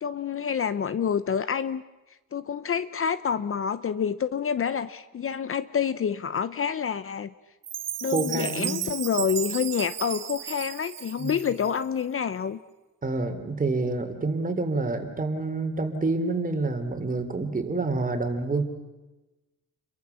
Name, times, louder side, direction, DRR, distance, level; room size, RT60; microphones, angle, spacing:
voice 1, 0.0-1.8 2.3-7.3 8.0-12.6, left 7 dB, 40° left, 14 dB, 0.9 m, -28 dB
Chime, 7.6-11.8, right 11 dB, 50° right, 0.8 m, -34 dB
voice 2, 8.0-8.8 11.2-11.4 13.0-18.6, right 3 dB, 25° right, 7 dB, 3.4 m, -28 dB
30.0 x 23.0 x 7.1 m, 1.1 s
cardioid pair, 145°, 34 cm